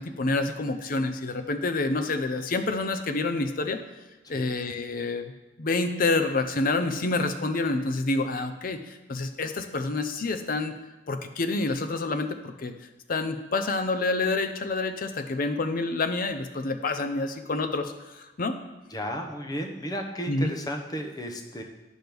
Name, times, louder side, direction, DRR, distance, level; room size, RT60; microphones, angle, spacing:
voice 1, 0.0-3.8 4.3-5.3 5.6-10.7 11.1-12.7 13.1-18.6 20.3-20.5, left 3 dB, 50° left, 8 dB, 0.6 m, -28 dB
voice 2, 18.9-21.6, equal, 20° left, 3 dB, 0.8 m, -34 dB
9.2 x 6.0 x 3.5 m, 1.1 s
head